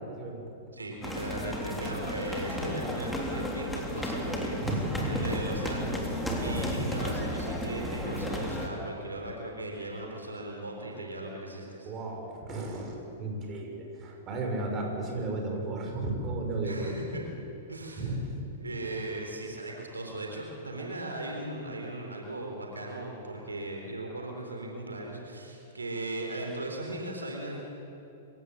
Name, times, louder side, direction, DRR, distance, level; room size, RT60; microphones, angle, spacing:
voice 1, 0.1-0.4 4.6-5.3 6.3-7.1 11.8-17.0 18.0-18.2, right 2 dB, 30° right, 1 dB, 6.1 m, -34 dB
voice 2, 0.7-4.6 5.0-11.9 16.6-17.3 17.7-18.3 18.6-27.6, right 1 dB, 85° right, 1 dB, 3.6 m, -38 dB
sound 1, 1.0-8.7, left 1 dB, 5° left, 3.5 m, -33 dB
27.5 x 16.5 x 7.5 m, 2.9 s
figure-of-eight pair, 105°, 0 cm